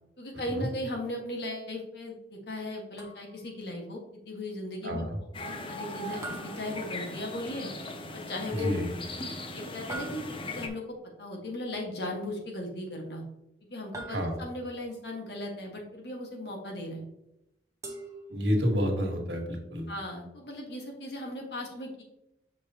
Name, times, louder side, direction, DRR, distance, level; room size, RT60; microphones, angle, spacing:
voice 1, 0.2-5.1 5.4-7.7 8.1-8.8 9.5-10.8 11.2-13.2 13.7-17.0 19.9-22.0, left 1 dB, 65° left, 0 dB, 1.7 m, -37 dB
sound 1, 3.0-3.6 6.2-7.5 9.9-10.8 13.9-14.8 17.8-18.8, right 2 dB, 20° right, 1.0 m, -44 dB
voice 2, 4.8-5.2 8.6-8.9 14.1-14.4 18.3-19.9, equal, 85° right, 0 dB, 1.7 m, -29 dB
sound 2, 5.3-10.7, left 2 dB, 30° left, 0.7 m, -39 dB
6.7 x 5.1 x 3.0 m, 0.87 s
head